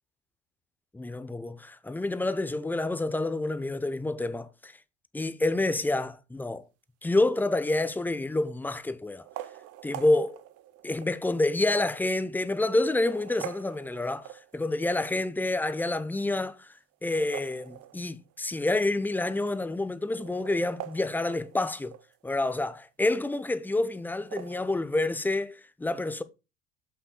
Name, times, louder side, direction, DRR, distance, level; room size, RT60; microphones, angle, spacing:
voice 1, 0.9-4.7 5.1-6.6 7.0-9.2 9.8-10.4 10.8-16.7 17.0-21.9 22.2-22.7 23.0-26.2, left 2 dB, 5° left, 0.6 m, -28 dB
sound 1, 7.5-7.9 9.1-11.2 11.8-11.9 12.8-14.8 16.9-18.4 18.7-18.8 19.0-19.1 19.9-22.2 24.1-24.7, right 13 dB, 45° right, 0.6 m, -44 dB
12.0 x 5.6 x 2.2 m
figure-of-eight pair, 70°, 34 cm